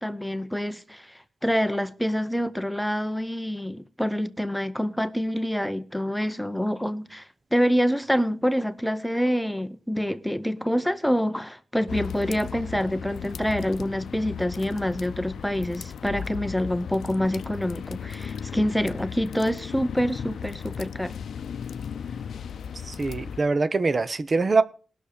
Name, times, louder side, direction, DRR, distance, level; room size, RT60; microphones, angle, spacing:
voice 1, 0.0-21.1, equal, 5° left, 0.7 m, -26 dB
sound 1, 11.9-23.4, left 7 dB, 90° left, 0.5 m, -36 dB
voice 2, 22.8-24.6, right 3 dB, 40° right, 0.8 m, -23 dB
19.0 x 6.5 x 5.0 m
wide cardioid pair, 95°, 0 cm